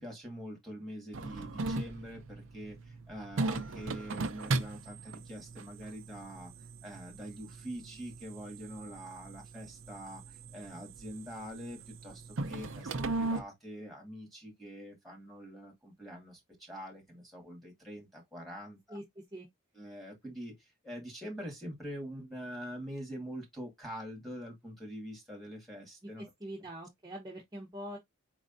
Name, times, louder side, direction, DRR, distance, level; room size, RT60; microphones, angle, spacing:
voice 1, 0.0-6.5 6.8-19.0 19.7-26.3, equal, ahead, 2.3 m, -45 dB
sound 1, 1.1-13.4, right 2 dB, 60° right, 0.6 m, -38 dB
voice 2, 26.2-28.0, equal, 20° right, 1.0 m, -43 dB
4.6 x 4.1 x 2.7 m
head